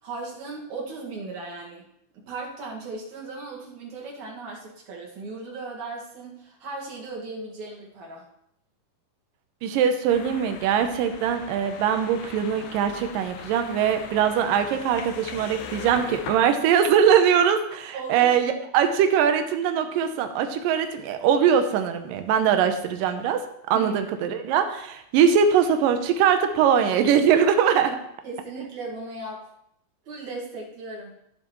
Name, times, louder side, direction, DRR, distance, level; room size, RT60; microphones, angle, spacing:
voice 1, 0.0-1.8 2.1-8.3 17.9-18.4 23.7-23.9 28.2-29.5 30.1-31.1, right 3 dB, 55° right, -3 dB, 3.1 m, -37 dB
voice 2, 9.6-28.0, right 8 dB, 75° right, 7 dB, 2.3 m, -22 dB
sound 1, 10.1-16.4, left 8 dB, 80° left, 2.7 m, -40 dB
14.5 x 7.3 x 3.1 m, 0.75 s
omnidirectional pair, 4.4 m